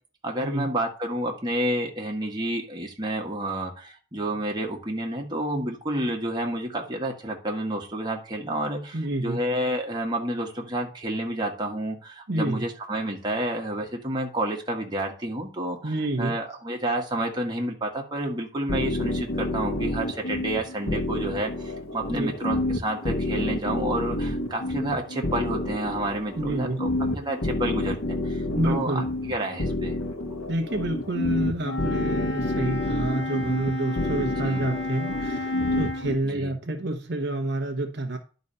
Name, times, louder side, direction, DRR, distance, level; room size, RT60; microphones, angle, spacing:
voice 1, 0.2-26.9 27.1-30.0 34.4-34.6 36.2-36.5, right 1 dB, 20° right, 1 dB, 1.6 m, -30 dB
voice 2, 8.9-9.4 12.3-12.6 15.8-16.4 22.0-22.3 26.4-26.8 28.6-29.1 30.5-38.2, right 1 dB, 50° right, 4 dB, 1.0 m, -28 dB
sound 1, 18.7-36.1, left 1 dB, 90° left, 1.7 m, -29 dB
Wind instrument woodwind instrument, 31.6-36.1, left 2 dB, 60° left, 1.4 m, -32 dB
11.0 x 4.1 x 5.5 m, 0.38 s
head